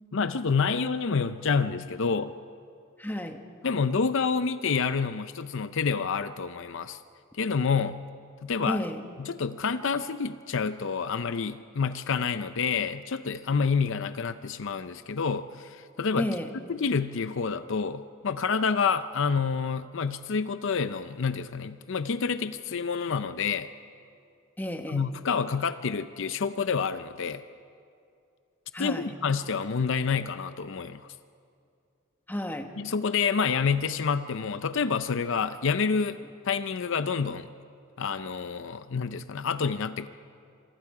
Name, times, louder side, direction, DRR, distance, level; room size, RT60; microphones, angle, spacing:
voice 1, 0.1-2.3 3.6-7.0 7.3-8.0 8.4-8.8 9.2-16.3 16.7-23.7 24.9-27.4 28.8-31.1 32.8-36.2 36.4-37.5 38.0-40.1, left 5 dB, 60° left, 11 dB, 0.6 m, -28 dB
voice 2, 3.0-3.4 8.7-9.0 16.2-16.5 24.6-25.0 28.7-29.1 32.3-32.7, left 1 dB, 10° left, 5 dB, 1.2 m, -32 dB
27.0 x 23.5 x 4.9 m, 2.4 s
head